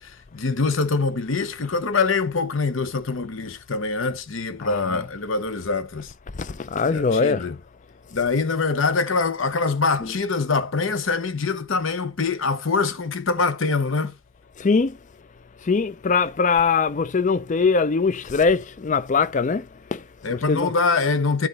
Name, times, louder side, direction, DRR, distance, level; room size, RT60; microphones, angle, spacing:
voice 1, 0.0-6.1 6.9-7.6 8.1-14.1 20.2-21.5, left 4 dB, 65° left, 0.8 m, -24 dB
voice 2, 4.6-5.1 6.3-7.5 10.0-10.2 14.6-15.0 15.6-20.7, left 4 dB, 35° left, 0.4 m, -22 dB
9.8 x 3.9 x 4.1 m
head